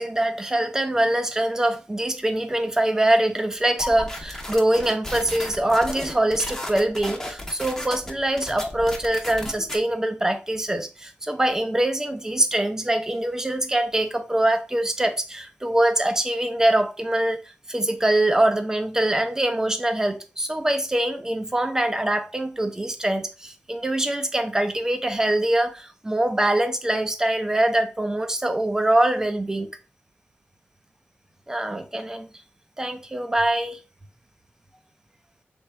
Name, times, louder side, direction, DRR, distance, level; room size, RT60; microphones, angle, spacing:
voice 1, 0.0-29.7 31.5-32.3 32.8-33.8, right 1 dB, 15° right, 0.6 m, -23 dB
sound 1, 3.8-9.8, left 1 dB, 15° left, 0.9 m, -34 dB
3.4 x 3.1 x 4.3 m
wide cardioid pair, 125°, 4 cm